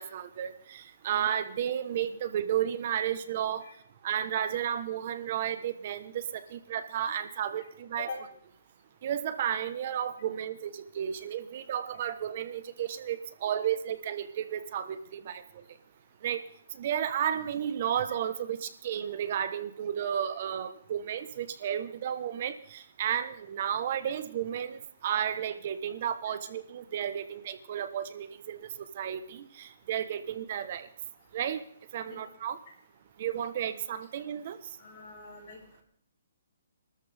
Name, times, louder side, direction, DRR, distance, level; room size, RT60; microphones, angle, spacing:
voice 1, 0.0-3.6 4.0-8.1 9.0-15.4 16.2-16.4 16.8-28.7 29.0-30.9 31.3-31.6 31.9-32.6 33.2-34.6, right 9 dB, 35° right, 11 dB, 1.0 m, -33 dB
voice 2, 34.8-35.8, left 4 dB, 40° left, -2 dB, 6.9 m, -43 dB
26.0 x 13.5 x 3.5 m, 0.65 s
hypercardioid pair, 170°, 0 cm